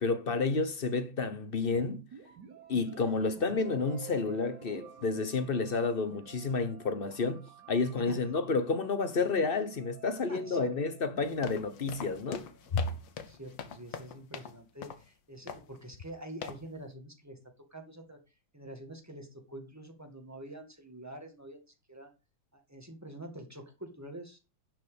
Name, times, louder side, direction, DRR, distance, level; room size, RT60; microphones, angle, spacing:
voice 1, 0.0-2.0 2.7-12.5 12.7-12.9, left 4 dB, 40° left, 0.8 m, -30 dB
sound 1, 2.1-13.8, right 6 dB, 55° right, 4.5 m, -52 dB
voice 2, 10.3-10.7 13.2-17.4 17.7-18.2 18.5-21.6 21.9-22.1 22.5-24.4, right 1 dB, 10° right, 1.9 m, -46 dB
sound 2, 11.2-14.6 14.8-15.1 15.5-15.8 16.4-16.7, left 8 dB, 70° left, 1.7 m, -43 dB
11.0 x 6.2 x 5.1 m
omnidirectional pair, 2.2 m